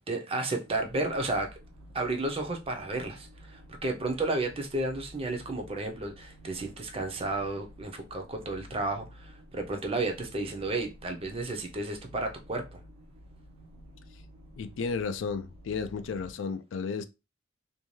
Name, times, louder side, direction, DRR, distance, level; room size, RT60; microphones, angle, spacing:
voice 1, 0.0-1.5 1.9-12.8, right 2 dB, 30° right, 0.5 m, -32 dB
sound 1, 0.6-16.3, equal, 80° right, 0.5 m, -52 dB
voice 2, 14.6-17.0, left 5 dB, 65° left, 0.3 m, -33 dB
2.6 x 2.2 x 3.0 m
head